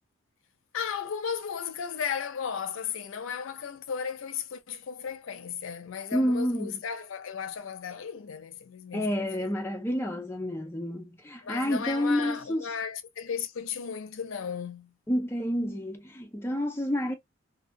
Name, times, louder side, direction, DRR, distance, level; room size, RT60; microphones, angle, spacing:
voice 1, 0.7-9.5 11.4-14.9, left 7 dB, 75° left, 0.5 m, -35 dB
voice 2, 6.1-6.8 8.9-12.7 15.1-17.1, equal, 10° left, 0.3 m, -29 dB
2.3 x 2.2 x 2.5 m
head